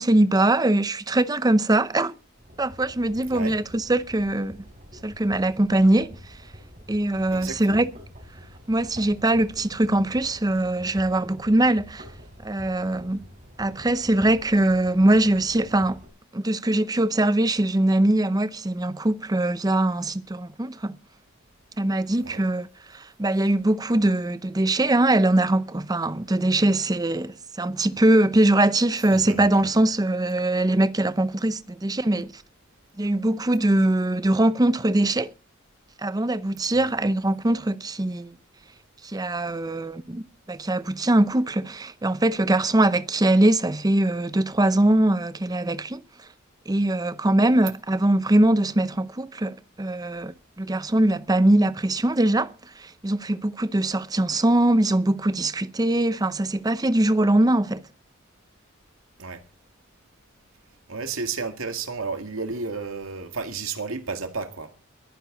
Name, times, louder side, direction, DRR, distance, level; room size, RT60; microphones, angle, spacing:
voice 1, 0.0-2.1 2.6-4.7 5.0-6.1 6.9-7.9 8.7-12.1 12.4-13.2 13.6-16.0 16.3-20.9 21.8-32.3 33.0-35.3 36.0-38.4 39.0-40.2 40.5-46.0 46.7-57.8, right 1 dB, 20° right, 0.6 m, -22 dB
sound 1, 2.4-16.1, equal, 40° right, 5.0 m, -46 dB
voice 2, 7.3-7.9 22.2-22.5 29.1-29.7 36.7-36.9 59.2-59.4 60.9-64.7, right 4 dB, 80° right, 2.0 m, -32 dB
21.5 x 10.0 x 3.9 m
head